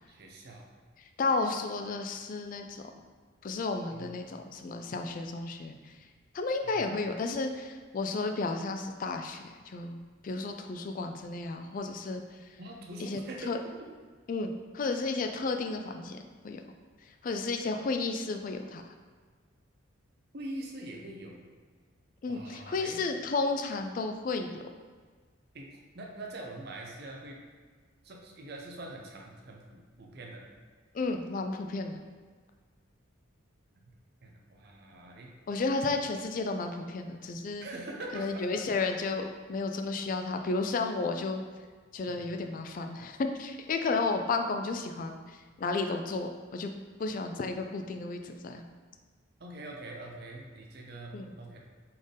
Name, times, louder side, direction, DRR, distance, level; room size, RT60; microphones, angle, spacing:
voice 1, 0.1-0.7 3.9-4.1 6.6-6.8 12.6-13.9 20.3-21.4 22.3-23.0 25.5-27.4 28.0-30.4 34.2-35.3 37.6-38.7 42.2-42.3 49.4-51.6, right 1 dB, 50° right, 0 dB, 0.6 m, -43 dB
voice 2, 1.2-2.8 3.4-5.9 6.3-12.2 13.0-13.2 13.5-13.6 14.3-16.6 17.2-18.8 22.2-24.6 30.9-32.0 35.5-37.7 38.1-41.4 41.9-46.7 47.0-48.7 51.1-51.3, left 3 dB, 40° left, 6 dB, 0.3 m, -32 dB
4.2 x 3.3 x 3.7 m, 1.5 s
head